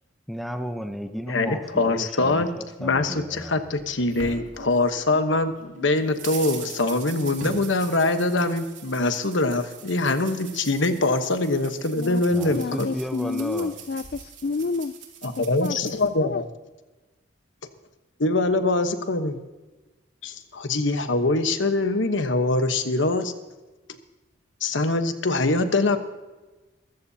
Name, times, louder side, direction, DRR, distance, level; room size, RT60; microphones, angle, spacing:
voice 1, 0.3-3.6 12.3-13.8, equal, ahead, 6 dB, 0.7 m, -34 dB
voice 2, 1.3-2.5 2.8-12.9 15.2-16.5 18.2-19.4 20.2-23.3 24.6-26.0, left 2 dB, 75° left, 8 dB, 1.1 m, -23 dB
sound 1, 3.3-5.2 5.6-16.1, right 4 dB, 75° right, 2.6 m, -41 dB
voice 3, 11.9-12.2 12.5-14.9 15.6-15.8 16.2-16.4, left 4 dB, 50° left, 12 dB, 0.4 m, -29 dB
22.5 x 14.5 x 2.8 m, 1.2 s
head